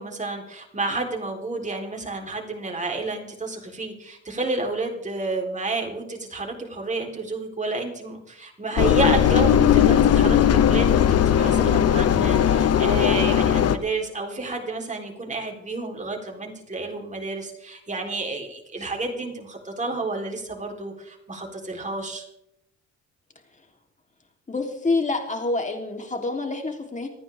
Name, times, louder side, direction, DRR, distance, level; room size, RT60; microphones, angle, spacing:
voice 1, 0.0-22.2, right 3 dB, 25° right, 2 dB, 3.9 m, -30 dB
Engine, 8.8-13.8, left 9 dB, 55° left, 0.9 m, -18 dB
voice 2, 24.5-27.1, left 3 dB, 25° left, 3 dB, 3.6 m, -27 dB
26.5 x 10.0 x 3.7 m, 0.81 s
cardioid pair, 90°, 30 cm